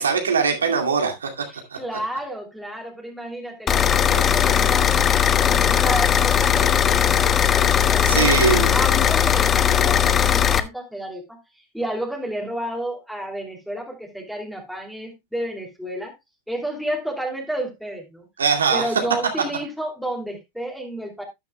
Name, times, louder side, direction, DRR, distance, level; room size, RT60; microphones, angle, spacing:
voice 1, 0.0-1.3 1.7-1.8 8.0-8.7 18.4-18.9, right 6 dB, 85° right, 2.3 m, -21 dB
voice 2, 1.5-5.0 5.4-8.3 8.7-11.4 11.7-16.1 16.5-18.3 18.7-21.2, right 1 dB, ahead, 2.8 m, -31 dB
sound 1, 3.7-10.6, left 9 dB, 25° left, 0.9 m, -18 dB
12.5 x 9.7 x 2.2 m
hypercardioid pair, 95°, 0 cm